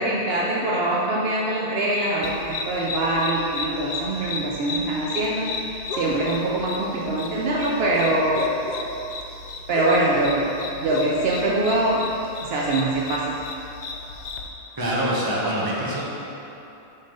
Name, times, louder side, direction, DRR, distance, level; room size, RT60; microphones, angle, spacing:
voice 1, 0.0-5.5 5.9-8.5 9.7-10.5 10.8-12.0 12.4-13.4, right 2 dB, 65° right, -4 dB, 0.8 m, -23 dB
sound 1, 2.2-14.5, left 4 dB, 55° left, 0.5 m, -34 dB
voice 2, 14.8-16.0, right 1 dB, 20° right, -6 dB, 1.0 m, -24 dB
5.5 x 5.4 x 3.8 m, 2.9 s
omnidirectional pair, 1.2 m